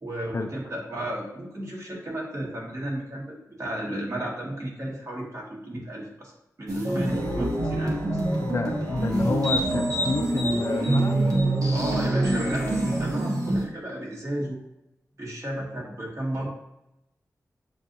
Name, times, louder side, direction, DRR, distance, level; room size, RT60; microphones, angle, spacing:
voice 1, 0.0-6.3 6.6-8.0 11.7-14.6 15.2-16.5, right 1 dB, 50° right, -3 dB, 1.6 m, -33 dB
sound 1, 6.7-13.7, right 1 dB, 65° right, 1.2 m, -25 dB
voice 2, 8.3-11.2, left 3 dB, 45° left, 4 dB, 0.4 m, -29 dB
7.0 x 2.6 x 2.7 m, 0.88 s
cardioid pair, 50°, 6 cm